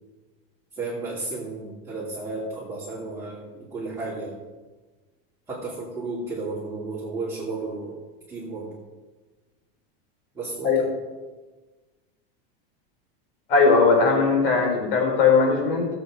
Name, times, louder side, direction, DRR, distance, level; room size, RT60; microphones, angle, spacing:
voice 1, 0.7-4.4 5.5-8.0 8.3-8.8 10.3-10.9, right 3 dB, 10° right, -8 dB, 2.8 m, -33 dB
voice 2, 13.5-15.9, left 4 dB, 65° left, 1 dB, 4.5 m, -19 dB
16.5 x 8.0 x 4.9 m, 1.3 s
supercardioid pair, 165°, 30 cm